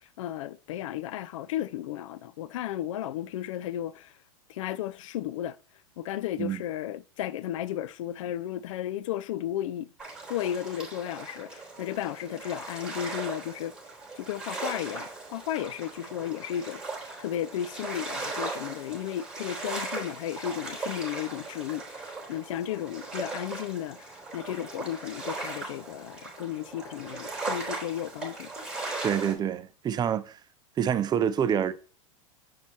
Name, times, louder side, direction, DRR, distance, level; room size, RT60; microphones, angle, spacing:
voice 1, 0.2-4.1 4.5-5.6 6.0-9.9 10.3-13.8 14.2-16.8 17.2-28.5, left 11 dB, 65° left, 0.4 m, -34 dB
sound 1, 10.0-29.3, right 3 dB, 5° right, 3.9 m, -38 dB
voice 2, 29.0-30.4 30.8-31.7, right 9 dB, 25° right, 0.5 m, -27 dB
7.3 x 6.0 x 2.8 m
hypercardioid pair, 95°, 18 cm